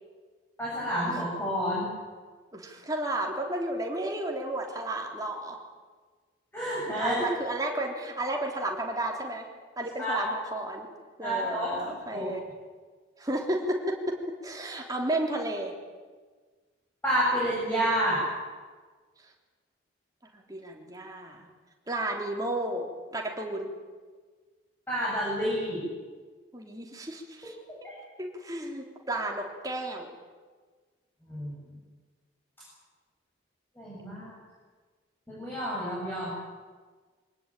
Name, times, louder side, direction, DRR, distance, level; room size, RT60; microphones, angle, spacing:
voice 1, 0.6-1.9 6.5-7.3 10.0-10.3 11.2-12.3 17.0-18.3 24.9-25.9 27.7-27.8 31.2-31.5 33.8-34.3 35.3-36.3, equal, 10° left, -7 dB, 7.9 m, -29 dB
voice 2, 2.5-5.6 7.0-9.5 9.8-10.9 11.2-12.4 13.2-15.8 20.3-21.5 21.9-23.7 26.5-27.6 27.8-27.9 28.2-30.1, right 1 dB, 20° right, 1 dB, 3.4 m, -32 dB
24.5 x 19.0 x 9.1 m, 1.4 s
head